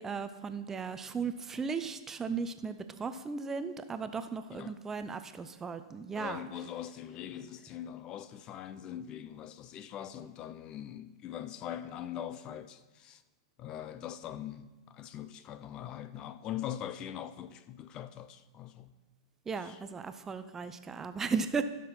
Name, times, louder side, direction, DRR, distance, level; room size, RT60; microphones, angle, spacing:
voice 1, 0.0-6.4 19.5-21.6, right 5 dB, 15° right, 0.5 m, -36 dB
voice 2, 6.2-13.2 13.6-18.9 19.6-19.8, left 10 dB, 35° left, 0.4 m, -42 dB
16.0 x 6.1 x 4.2 m
hypercardioid pair, 130°, 2 cm